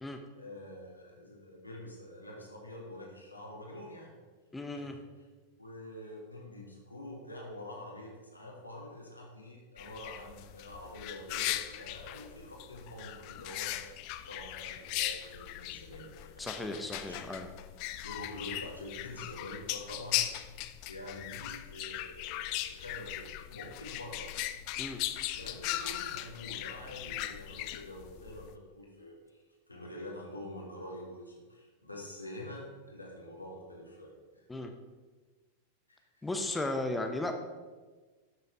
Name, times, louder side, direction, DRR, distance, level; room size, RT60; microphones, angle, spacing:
voice 1, 0.4-4.2 4.7-4.9 5.6-13.8 14.3-17.2 18.0-24.4 25.3-29.4 29.7-34.5 35.9-36.4, left 1 dB, 85° left, -2 dB, 2.5 m, -46 dB
voice 2, 4.5-5.0 16.4-17.5 24.8-25.0 34.5-34.7 36.2-37.3, left 2 dB, 10° left, 5 dB, 0.9 m, -35 dB
sound 1, 9.8-28.5, left 14 dB, 45° left, 0.5 m, -39 dB
12.0 x 6.8 x 4.8 m, 1.3 s
figure-of-eight pair, 90°, 0 cm